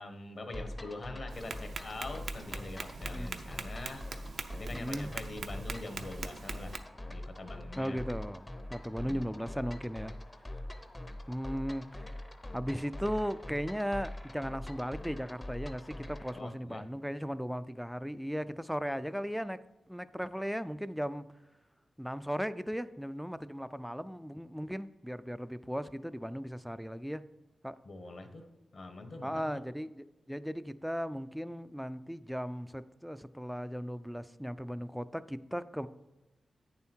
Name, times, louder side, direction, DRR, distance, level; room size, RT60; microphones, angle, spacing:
voice 1, 0.0-4.1 4.5-6.8 7.1-8.0 9.0-9.4 16.3-16.8 27.8-28.4 28.7-29.6, left 2 dB, 50° left, 7 dB, 1.1 m, -44 dB
sound 1, 0.5-16.4, left 1 dB, 20° left, 0.7 m, -43 dB
Tap, 1.3-6.8, right 4 dB, 70° right, 0.6 m, -43 dB
voice 2, 4.7-5.1 7.8-10.2 11.3-12.1 12.5-19.6 19.9-21.3 22.0-27.2 27.6-27.7 29.2-35.9, equal, ahead, 14 dB, 0.4 m, -37 dB
8.8 x 7.1 x 4.5 m, 1.1 s
wide cardioid pair, 100°, 0 cm